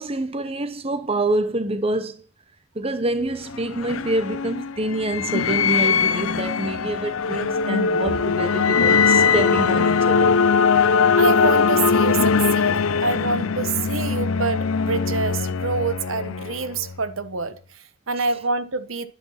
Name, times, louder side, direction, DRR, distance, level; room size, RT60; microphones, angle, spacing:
voice 1, 0.0-2.2 2.7-10.3 18.2-18.3, right 2 dB, 30° right, 1.0 m, -26 dB
sound 1, 3.2-16.9, left 5 dB, 80° left, 0.6 m, -21 dB
voice 2, 11.2-19.1, right 4 dB, 75° right, 1.3 m, -26 dB
11.5 x 10.0 x 5.8 m
head